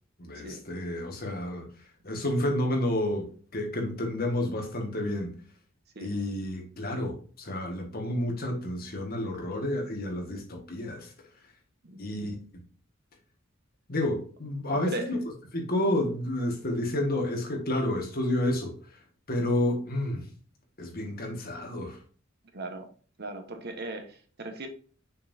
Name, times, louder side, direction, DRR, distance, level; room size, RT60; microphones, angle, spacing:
voice 1, 0.2-1.7 2.0-5.3 6.0-11.1 12.0-12.3 13.9-15.2 15.5-18.7 19.3-20.2 20.8-22.0, left 1 dB, 50° left, 1.8 m, -30 dB
voice 2, 14.7-15.1 22.5-22.9 23.2-24.7, right 2 dB, 55° right, 1.2 m, -37 dB
6.5 x 5.5 x 2.7 m
head